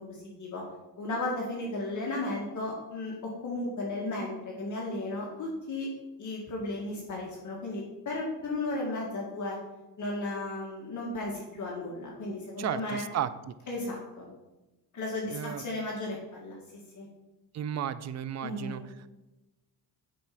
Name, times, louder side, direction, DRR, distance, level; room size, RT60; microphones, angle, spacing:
voice 1, 0.1-0.6 1.0-5.9 6.2-9.6 10.0-13.0 13.7-14.3 14.9-16.6 17.0-17.1 18.4-18.8, left 2 dB, 45° left, -3 dB, 1.8 m, -34 dB
voice 2, 12.6-13.3 15.3-15.6 17.5-18.8, right 10 dB, 40° right, 14 dB, 0.5 m, -33 dB
9.4 x 4.4 x 5.9 m, 1.0 s
cardioid pair, 135°, 41 cm